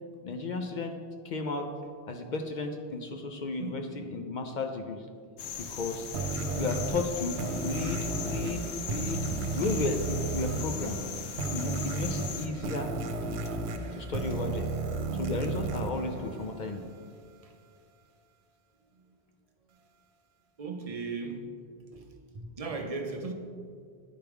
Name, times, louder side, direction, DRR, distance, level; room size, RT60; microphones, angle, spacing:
voice 1, 0.2-0.9 1.2-1.7 2.1-5.1 5.6-6.1 6.6-8.6 8.9-9.3 9.5-11.0 11.5-12.9 13.9-14.7 15.1-16.8, left 3 dB, 55° left, 4 dB, 0.5 m, -34 dB
sound 1, 5.4-12.5, left 7 dB, 80° left, 0.9 m, -39 dB
sound 2, 6.1-16.9, right 3 dB, 80° right, 0.9 m, -34 dB
voice 2, 20.6-21.5 21.9-23.3, right 3 dB, 40° right, 4 dB, 0.6 m, -37 dB
10.0 x 4.6 x 3.5 m, 2.2 s
omnidirectional pair, 1.1 m